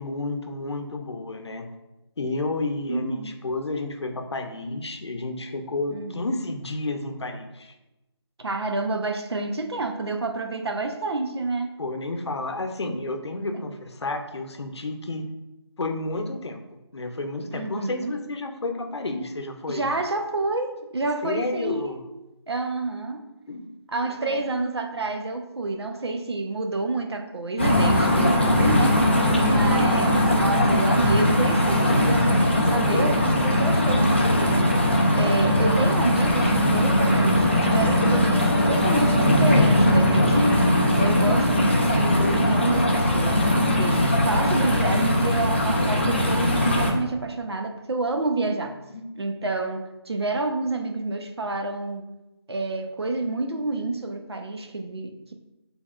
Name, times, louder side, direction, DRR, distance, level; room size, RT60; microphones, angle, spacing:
voice 1, 0.0-1.7 2.2-7.7 11.8-15.3 15.8-19.9 21.2-22.0 23.5-23.7 24.1-24.4 30.0-30.1 48.9-49.1, left 2 dB, 75° left, 6 dB, 0.7 m, -31 dB
voice 2, 2.9-3.3 5.9-6.4 8.4-11.8 17.5-18.1 19.7-21.9 22.5-23.2 23.9-29.0 29.3-34.7 35.1-40.6 40.9-48.8 49.2-52.0 52.5-55.3, right 2 dB, 65° right, 5 dB, 0.7 m, -29 dB
sound 1, 27.6-46.9, left 1 dB, 25° left, 0.4 m, -20 dB
6.2 x 3.4 x 2.4 m, 0.97 s
figure-of-eight pair, 175°, 14 cm